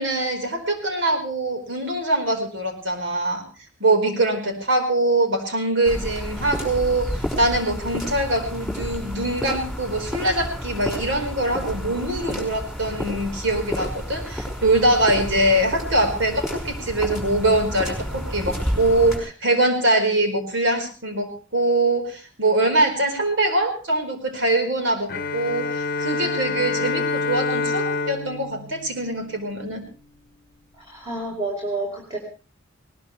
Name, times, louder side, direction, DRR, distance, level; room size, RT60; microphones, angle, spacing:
voice 1, 0.0-3.4 3.8-29.8, right 1 dB, 70° right, 5 dB, 4.6 m, -23 dB
sound 1, 5.9-19.2, equal, ahead, 5.3 m, -30 dB
Bowed string instrument, 25.1-29.8, left 4 dB, 50° left, 0.9 m, -27 dB
voice 2, 30.7-32.2, right 2 dB, 20° right, -3 dB, 4.1 m, -29 dB
20.5 x 19.0 x 3.3 m, 0.35 s
head